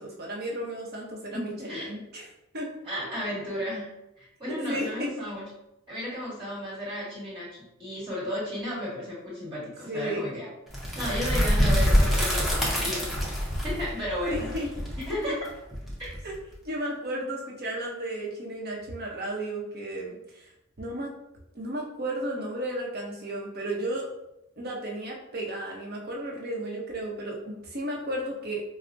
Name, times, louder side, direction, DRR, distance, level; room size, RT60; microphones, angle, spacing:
voice 1, 0.0-2.3 2.5-2.7 4.5-5.3 9.9-10.3 14.3-14.7 15.3-15.4 16.2-16.3 16.6-20.5 20.8-21.1 21.5-24.1 24.6-28.6, right 1 dB, 50° right, -1 dB, 0.7 m, -33 dB
voice 2, 1.3-1.9 2.8-3.9 4.2-5.5 5.9-10.5 10.9-13.1 13.6-14.5 15.0-15.4 16.0-16.1, equal, 25° right, -6 dB, 1.3 m, -34 dB
sound 1, 10.7-16.5, equal, ahead, 0.6 m, -25 dB
4.6 x 2.0 x 2.5 m, 0.86 s
head